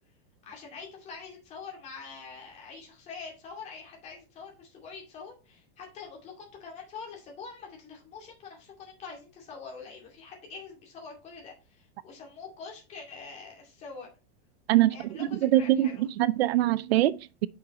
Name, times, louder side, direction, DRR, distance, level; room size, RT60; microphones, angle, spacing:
voice 1, 0.5-14.1 14.9-16.1, left 5 dB, 20° left, 2.3 m, -45 dB
voice 2, 14.7-17.5, right 14 dB, 75° right, 0.5 m, -24 dB
6.2 x 5.8 x 4.2 m
supercardioid pair, 180°, 31 cm